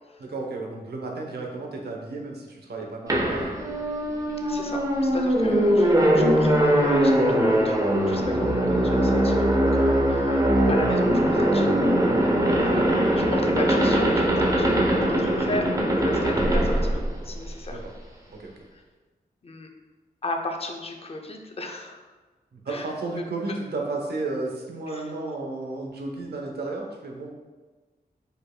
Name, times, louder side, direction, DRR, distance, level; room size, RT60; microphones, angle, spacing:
voice 1, 0.2-3.6 12.6-12.9 17.7-17.8 18.4-18.5 22.5-27.3, right 3 dB, 80° right, 0 dB, 0.8 m, -33 dB
sound 1, 3.1-17.8, right 1 dB, 20° right, 0.6 m, -21 dB
voice 2, 4.4-11.7 13.2-17.8 18.7-18.8 19.4-19.7 20.2-22.0 22.7-22.9 24.9-25.0, left 2 dB, 35° left, 3 dB, 0.5 m, -34 dB
5.2 x 4.4 x 2.2 m, 1.3 s
wide cardioid pair, 135°, 17 cm